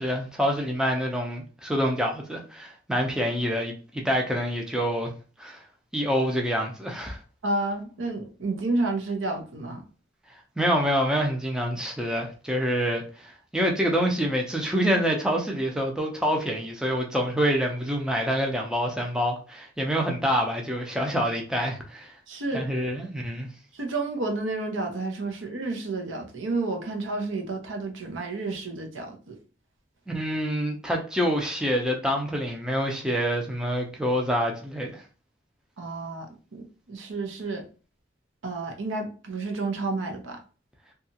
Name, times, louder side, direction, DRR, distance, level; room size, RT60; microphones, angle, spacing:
voice 1, 0.0-5.1 5.4-5.6 5.9-7.2 10.6-22.1 22.5-23.5 30.1-35.0, equal, 5° right, 0.4 m, -26 dB
voice 2, 7.4-9.8 22.3-22.6 23.7-29.4 35.8-37.6 38.4-40.4, right 2 dB, 75° right, 0.7 m, -30 dB
2.8 x 2.4 x 2.7 m
head